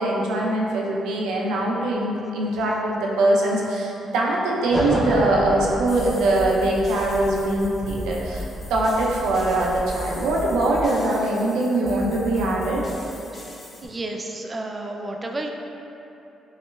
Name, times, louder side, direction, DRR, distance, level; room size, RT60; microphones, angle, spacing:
voice 1, 0.0-12.8, right 2 dB, 90° right, -3 dB, 0.5 m, -22 dB
sound 1, 4.7-10.9, equal, 5° right, 0.9 m, -31 dB
sound 2, 5.9-13.9, left 2 dB, 45° left, 0.8 m, -38 dB
voice 2, 13.8-15.5, right 2 dB, 25° right, 2 dB, 0.3 m, -31 dB
5.3 x 2.1 x 2.2 m, 2.9 s
cardioid pair, 90°, 0 cm